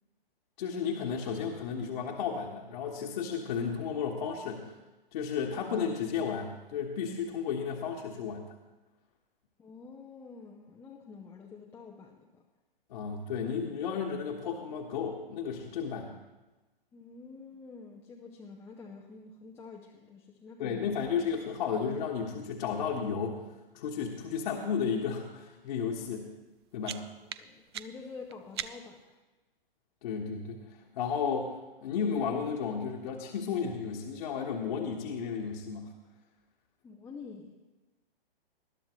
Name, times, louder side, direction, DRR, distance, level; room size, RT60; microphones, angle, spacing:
voice 1, 0.6-4.7 5.1-8.4 12.9-16.1 20.6-23.4 23.7-26.3 26.7-27.0 30.0-30.6 30.9-31.5 31.8-35.9, left 6 dB, 50° left, -2 dB, 1.5 m, -33 dB
voice 2, 9.6-12.4 16.9-20.9 27.4-29.2 36.8-37.6, left 4 dB, 10° left, -1 dB, 0.7 m, -48 dB
sound 1, 26.4-29.1, right 11 dB, 30° right, 0.4 m, -43 dB
20.0 x 12.0 x 3.1 m, 1.1 s
figure-of-eight pair, 125°, 30 cm